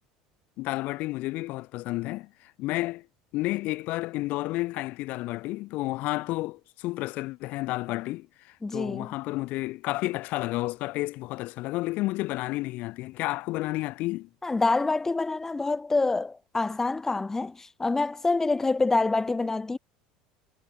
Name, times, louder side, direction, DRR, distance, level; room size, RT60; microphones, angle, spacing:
voice 1, 0.6-3.1 3.3-14.3, left 19 dB, 60° left, 0.7 m, -31 dB
voice 2, 8.6-9.1 14.4-19.8, left 3 dB, 15° left, 0.4 m, -26 dB
hypercardioid pair, 80°, 3 cm